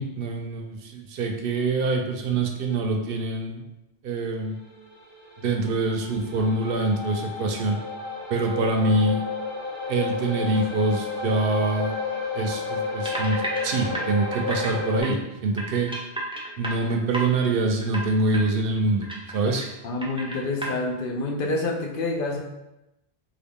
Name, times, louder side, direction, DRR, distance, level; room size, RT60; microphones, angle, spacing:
voice 1, 0.0-3.6 4.0-4.6 5.4-7.8 8.3-9.2 9.9-11.9 12.3-16.0 16.6-19.1 19.3-19.7, right 2 dB, 65° right, 3 dB, 0.7 m, -25 dB
sound 1, 4.6-15.0, left 4 dB, 30° left, 1.0 m, -32 dB
sound 2, 13.0-14.7 15.0-15.1 15.6-17.4 17.8-18.0 18.3-18.5 18.8-19.7 20.0-20.7, right 1 dB, 10° right, 0.3 m, -32 dB
voice 2, 19.8-22.4, left 2 dB, 60° left, 0 dB, 0.7 m, -27 dB
3.7 x 2.3 x 3.5 m, 0.93 s
omnidirectional pair, 1.1 m